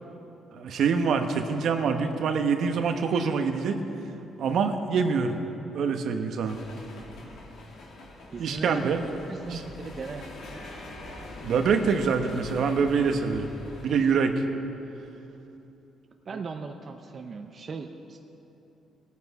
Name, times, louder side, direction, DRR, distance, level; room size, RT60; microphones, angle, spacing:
voice 1, 0.5-3.8 4.4-5.4 5.7-6.6 8.4-9.1 9.4-9.6 11.4-13.5 13.8-14.4, right 5 dB, 70° right, 6 dB, 0.9 m, -25 dB
sound 1, 6.4-14.1, left 2 dB, 75° left, 2.2 m, -44 dB
voice 2, 8.3-8.9 9.3-10.3 16.3-18.2, right 4 dB, 45° right, 4 dB, 0.7 m, -38 dB
18.5 x 8.4 x 4.7 m, 2.9 s
cardioid pair, 90°, 0 cm